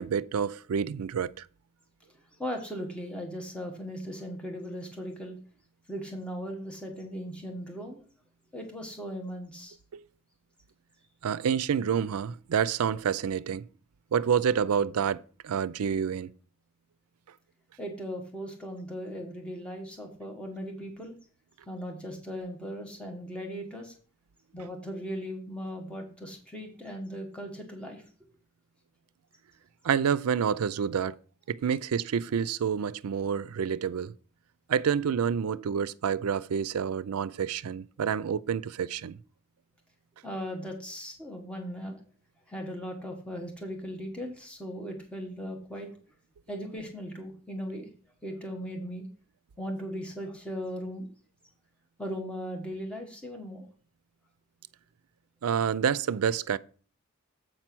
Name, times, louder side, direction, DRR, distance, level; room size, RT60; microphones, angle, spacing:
voice 1, 0.0-1.4 9.9-10.0 11.2-13.7 14.1-16.3 29.8-31.2 31.5-34.1 34.7-39.2 55.4-56.6, right 7 dB, 90° right, 0.4 m, -28 dB
voice 2, 2.4-5.4 5.9-8.0 8.5-9.8 17.8-21.1 21.7-23.9 24.5-28.0 40.2-42.0 42.5-45.9 46.5-47.9 48.2-49.0 49.6-51.1 52.0-53.7, equal, 5° left, 1.3 m, -38 dB
7.8 x 4.5 x 6.0 m
head